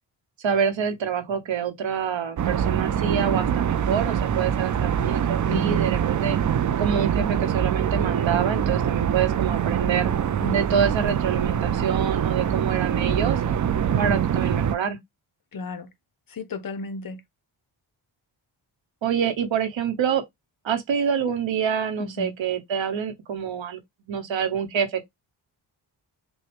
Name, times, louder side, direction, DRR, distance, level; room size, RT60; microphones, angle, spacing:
voice 1, 0.4-6.4 6.8-10.1 10.5-13.4 14.0-15.0 19.0-20.2 20.6-23.8 24.1-25.0, right 7 dB, 70° right, 1.0 m, -26 dB
sound 1, 2.4-14.8, right 9 dB, 40° right, 0.4 m, -24 dB
voice 2, 5.5-5.9 10.4-10.9 15.5-15.9 16.3-17.2 22.0-22.3, left 2 dB, 45° left, 0.8 m, -34 dB
6.2 x 2.2 x 3.3 m
cardioid pair, 70°, 47 cm